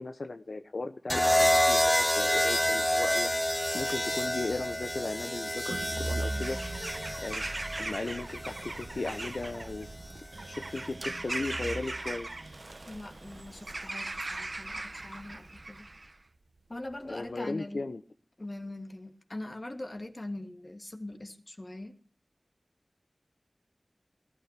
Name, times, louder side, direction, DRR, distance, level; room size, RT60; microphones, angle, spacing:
voice 1, 0.0-3.3 3.7-6.6 7.2-7.5 7.8-9.9 10.4-12.3 17.1-18.0, left 3 dB, 75° left, 8 dB, 1.0 m, -36 dB
sound 1, 1.1-9.2 10.4-10.8, equal, 10° left, 0.8 m, -29 dB
sound 2, 5.7-15.9 16.3-17.1, right 2 dB, 70° right, 1.4 m, -42 dB
Bird vocalization bird call bird song / Crow, 6.3-16.2, right 2 dB, 50° right, 1.1 m, -40 dB
voice 2, 12.8-15.9 16.7-17.9 18.4-22.0, left 1 dB, 40° left, 5 dB, 2.7 m, -42 dB
19.5 x 12.5 x 6.0 m, 0.41 s
wide cardioid pair, 65°, 0 cm